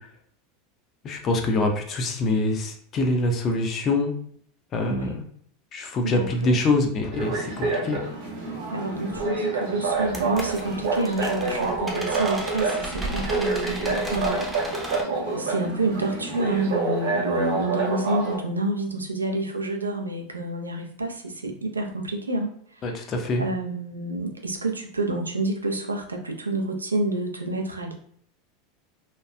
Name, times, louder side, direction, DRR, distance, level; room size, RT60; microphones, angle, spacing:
voice 1, 1.0-4.1 4.7-5.2 5.7-8.0 22.8-23.4, left 2 dB, 35° left, 3 dB, 0.6 m, -25 dB
voice 2, 4.8-5.2 6.0-6.7 8.7-14.5 15.0-22.5 22.8-23.0 23.4-28.0, right 2 dB, 90° right, 3 dB, 0.4 m, -28 dB
sound 1, 7.1-18.4, right 3 dB, 65° right, 1.0 m, -28 dB
sound 2, 9.1-9.3 10.0-15.0, right 1 dB, 10° right, 0.6 m, -35 dB
2.8 x 2.3 x 2.2 m, 0.62 s
figure-of-eight pair, 85°, 0 cm